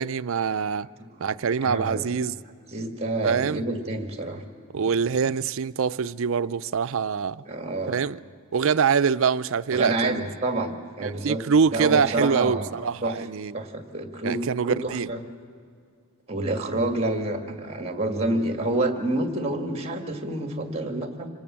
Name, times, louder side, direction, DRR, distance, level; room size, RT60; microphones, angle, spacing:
voice 1, 0.0-0.9 1.2-2.3 3.2-3.6 4.7-7.4 7.9-8.2 8.5-10.2 11.0-13.5 14.2-15.1, right 6 dB, 65° right, 0.5 m, -24 dB
voice 2, 1.0-1.3 1.6-2.2 2.7-4.4 7.5-8.0 9.7-11.4 11.7-12.7 13.0-13.1 13.5-15.2 16.3-21.3, right 2 dB, 30° right, 1.9 m, -28 dB
26.0 x 19.5 x 7.4 m
head